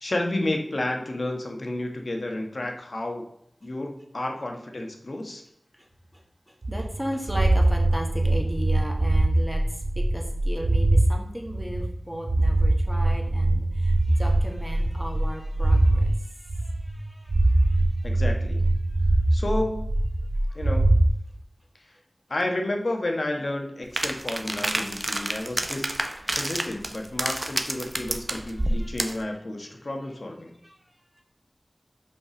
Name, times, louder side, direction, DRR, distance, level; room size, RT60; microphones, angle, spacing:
voice 1, 0.0-3.3 3.6-5.4 18.0-18.6 19.3-19.9 20.5-20.9 22.3-25.9 26.2-30.5, left 1 dB, 65° left, 2 dB, 1.4 m, -31 dB
voice 2, 6.5-18.1 20.5-20.7 27.8-28.9 30.6-30.7, equal, 5° right, 1 dB, 1.8 m, -37 dB
sound 1, 6.6-11.1 11.5-16.1 16.5-17.0 17.3-21.1, right 1 dB, 85° right, 0.7 m, -22 dB
sound 2, 24.0-29.2, right 1 dB, 40° right, 0.8 m, -29 dB
5.7 x 5.2 x 5.1 m, 0.77 s
wide cardioid pair, 50°, 0 cm